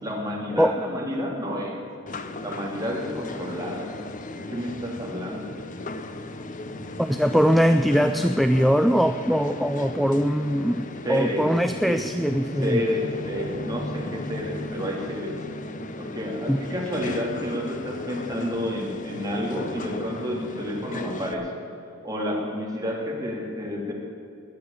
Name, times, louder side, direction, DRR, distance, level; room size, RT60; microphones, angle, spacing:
voice 1, 0.0-1.8 2.4-3.9 4.4-5.5 11.0-11.5 11.9-15.4 16.0-21.5 22.0-23.9, equal, 20° right, -2 dB, 2.8 m, -30 dB
sound 1, 2.1-21.3, left 2 dB, 40° left, 0.8 m, -36 dB
voice 2, 7.0-12.8 16.5-16.6, equal, ahead, 9 dB, 0.3 m, -21 dB
20.0 x 6.7 x 8.8 m, 2.7 s
head